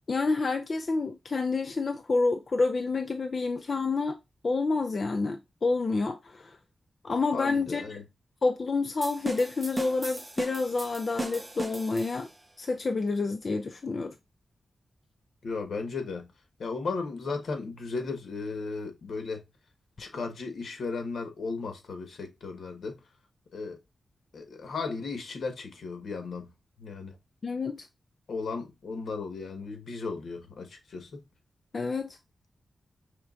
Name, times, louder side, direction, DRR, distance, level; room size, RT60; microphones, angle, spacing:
voice 1, 0.1-4.1 4.4-6.6 7.0-8.0 8.4-12.3 12.6-14.1 27.4-27.9 31.7-32.2, left 3 dB, 40° left, 0.4 m, -28 dB
voice 2, 7.3-8.0 15.4-16.3 16.6-19.4 20.0-23.0 23.5-23.8 24.3-26.5 26.8-27.2 28.3-31.2, left 4 dB, 70° left, 1.3 m, -35 dB
sound 1, 9.0-12.4, right 2 dB, 15° right, 1.0 m, -37 dB
5.8 x 3.4 x 2.5 m
wide cardioid pair, 150°, 0 cm